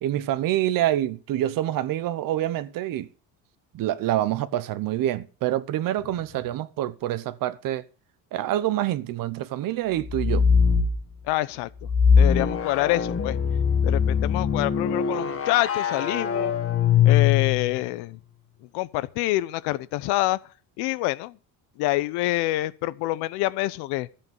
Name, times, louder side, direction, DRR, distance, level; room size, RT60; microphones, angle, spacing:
voice 1, 0.0-3.1 3.7-7.9 8.3-10.5, right 13 dB, 55° right, 1.0 m, -26 dB
sound 1, 10.0-11.0 11.8-17.8, left 7 dB, 35° left, 1.5 m, -22 dB
voice 2, 11.3-11.7 12.2-13.4 13.8-16.5 17.0-18.2 18.6-20.4 20.8-21.4 21.8-24.1, left 18 dB, 80° left, 0.9 m, -26 dB
13.5 x 8.8 x 5.4 m
cardioid pair, 135°, 39 cm